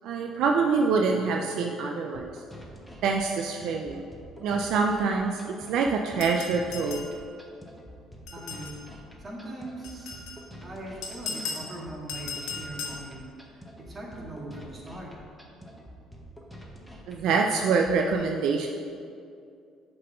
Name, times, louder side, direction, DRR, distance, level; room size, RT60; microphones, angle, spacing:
voice 1, 0.0-2.4 3.0-4.0 4.4-5.4 5.7-7.1 17.1-18.7, right 4 dB, 70° right, 2 dB, 0.4 m, -25 dB
sound 1, 2.1-18.1, equal, 5° left, 1.0 m, -47 dB
sound 2, 6.2-7.1 8.3-8.8 9.8-10.4 11.0-11.7 12.1-13.0, left 5 dB, 80° left, 1.2 m, -36 dB
voice 2, 8.3-8.7 9.2-10.2 10.6-15.1, right 1 dB, 30° right, -3 dB, 1.8 m, -41 dB
7.4 x 3.9 x 5.6 m, 2.4 s
cardioid pair, 90°, 0 cm